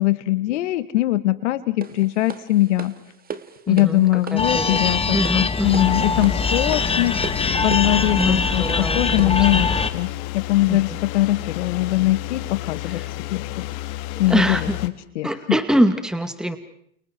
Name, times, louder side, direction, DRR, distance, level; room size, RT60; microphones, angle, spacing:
voice 1, 0.0-2.9 3.7-7.3 7.6-10.1 10.3-13.0 13.3-13.7 14.2-15.3, left 16 dB, 85° left, 12 dB, 2.1 m, -21 dB
sound 1, 1.8-9.5, right 6 dB, 25° right, 2.1 m, -38 dB
voice 2, 3.7-4.8 5.1-5.9 8.2-9.9 10.7-11.0 12.8-13.1 14.3-14.8 15.2-16.6, equal, ahead, 9 dB, 2.3 m, -24 dB
sound 2, 4.4-9.9, left 4 dB, 15° left, 1.7 m, -22 dB
sound 3, 5.6-14.9, left 17 dB, 65° left, 2.2 m, -31 dB
30.0 x 29.5 x 4.7 m, 0.66 s
supercardioid pair, 110°, 35 cm